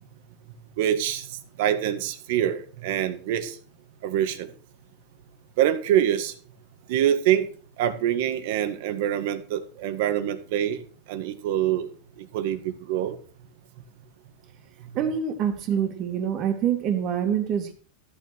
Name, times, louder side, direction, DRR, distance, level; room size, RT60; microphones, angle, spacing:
voice 1, 0.8-3.6 4.0-4.5 5.6-6.3 6.9-7.5 7.8-10.8 11.1-11.9 12.3-13.2, right 11 dB, 65° right, 10 dB, 1.8 m, -25 dB
voice 2, 14.9-17.7, right 8 dB, 40° right, 6 dB, 2.4 m, -25 dB
13.5 x 6.7 x 6.1 m, 0.40 s
supercardioid pair, 145°, 0 cm